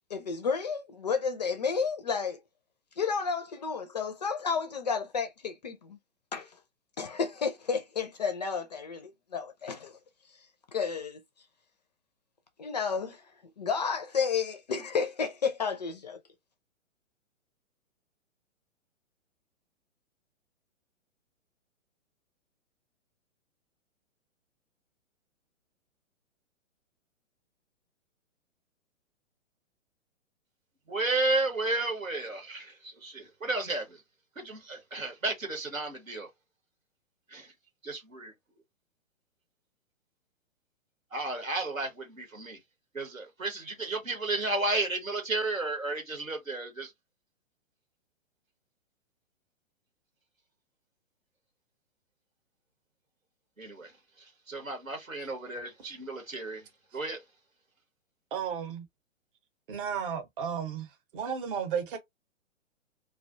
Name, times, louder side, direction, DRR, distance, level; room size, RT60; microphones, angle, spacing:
voice 1, 0.1-2.4 3.0-6.0 6.3-6.5 7.0-10.0 10.7-11.2 12.6-13.3 13.6-16.2, left 5 dB, 35° left, 0.4 m, -31 dB
voice 2, 30.9-34.0 34.4-36.3 37.3-37.5 37.8-38.3 41.1-42.6 42.9-46.9 53.6-53.9 54.5-56.6 56.9-57.2, right 2 dB, 90° right, 1.2 m, -32 dB
voice 3, 58.3-58.9 59.7-62.0, right 7 dB, 40° right, 0.8 m, -33 dB
2.4 x 2.2 x 2.5 m
figure-of-eight pair, 120°, 39 cm